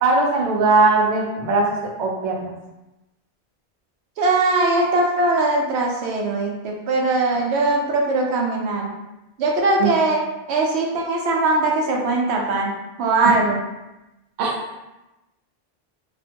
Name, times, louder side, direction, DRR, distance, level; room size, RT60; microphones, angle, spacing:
voice 1, 0.0-2.5 9.8-9.9 13.3-13.4 14.4-14.5, right 3 dB, 55° right, -1 dB, 0.5 m, -19 dB
voice 2, 4.2-8.9 9.4-10.2 10.5-12.7 13.0-13.6, right 2 dB, 90° right, -1 dB, 0.8 m, -20 dB
2.5 x 2.1 x 2.7 m, 0.98 s
omnidirectional pair, 1.1 m